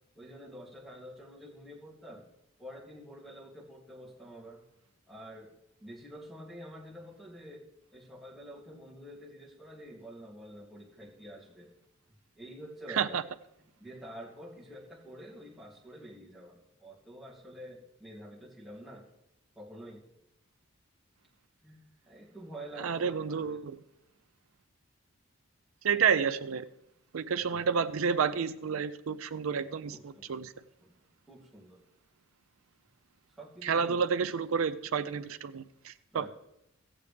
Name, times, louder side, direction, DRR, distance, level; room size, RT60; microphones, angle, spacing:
voice 1, 0.1-2.3 2.6-4.6 5.1-5.5 5.8-7.7 7.9-11.7 12.4-13.2 13.8-19.1 19.6-20.0 21.6-23.5 27.5-27.6 29.9-30.4 30.8-30.9 31.3-31.8 33.3-34.0 36.1-36.3, equal, ahead, -7 dB, 2.6 m, -48 dB
voice 2, 22.8-23.8 25.8-26.7 27.1-30.5 33.6-36.3, right 6 dB, 85° right, 12 dB, 0.5 m, -30 dB
15.0 x 8.6 x 3.4 m, 0.82 s
head